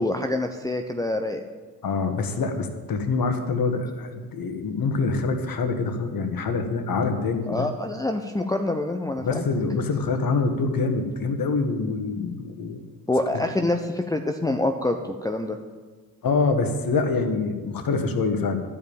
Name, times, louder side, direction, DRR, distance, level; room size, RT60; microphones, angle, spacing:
voice 1, 0.0-1.4 7.5-9.5 13.1-15.6, left 2 dB, 5° left, 3 dB, 0.8 m, -26 dB
voice 2, 1.8-7.7 9.2-12.8 13.3-13.4 16.2-18.6, left 4 dB, 45° left, 6 dB, 1.7 m, -25 dB
12.5 x 5.5 x 8.8 m, 1.4 s
hypercardioid pair, 50°, 48 cm